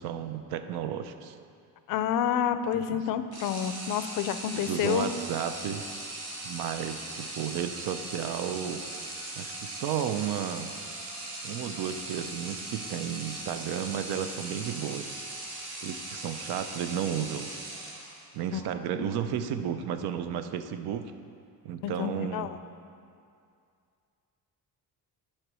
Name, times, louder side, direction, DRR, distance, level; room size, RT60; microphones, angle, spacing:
voice 1, 0.0-1.4 2.9-3.0 4.5-5.8 6.4-8.8 9.4-10.7 11.4-15.1 15.8-17.5 18.3-21.1 21.6-22.6, right 9 dB, 80° right, 9 dB, 0.6 m, -33 dB
voice 2, 1.9-5.1 18.5-18.6 18.9-19.1 21.8-22.6, left 9 dB, 60° left, 11 dB, 0.5 m, -29 dB
sound 1, 3.3-18.4, right 2 dB, 40° right, 1.4 m, -39 dB
9.7 x 4.4 x 6.2 m, 2.4 s
cardioid pair, 175°, 38 cm